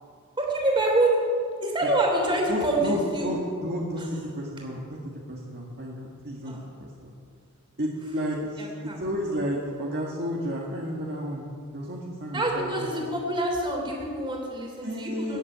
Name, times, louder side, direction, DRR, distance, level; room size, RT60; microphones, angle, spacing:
voice 1, 0.4-1.2 1.6-3.3 4.0-4.1 6.4-6.6 8.6-9.0 12.3-15.4, right 1 dB, 20° right, 0 dB, 3.1 m, -26 dB
voice 2, 2.5-7.1 7.8-11.5 11.7-12.9 14.8-15.4, equal, 50° right, -3 dB, 1.7 m, -32 dB
14.5 x 7.6 x 9.2 m, 2.1 s
head